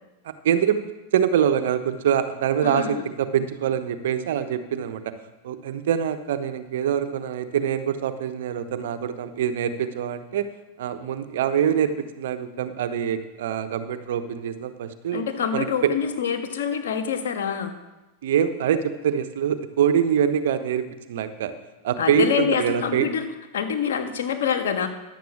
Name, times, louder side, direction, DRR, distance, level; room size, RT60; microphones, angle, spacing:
voice 1, 0.2-0.8 1.1-5.1 5.4-10.5 10.8-15.2 15.5-15.9 18.2-21.5 21.8-23.1, right 9 dB, 70° right, 11 dB, 1.0 m, -24 dB
voice 2, 2.6-3.0 15.1-17.7 22.0-23.3 23.5-24.9, left 7 dB, 75° left, 5 dB, 1.6 m, -26 dB
11.0 x 7.8 x 7.2 m, 1.1 s
hypercardioid pair, 105°, 0 cm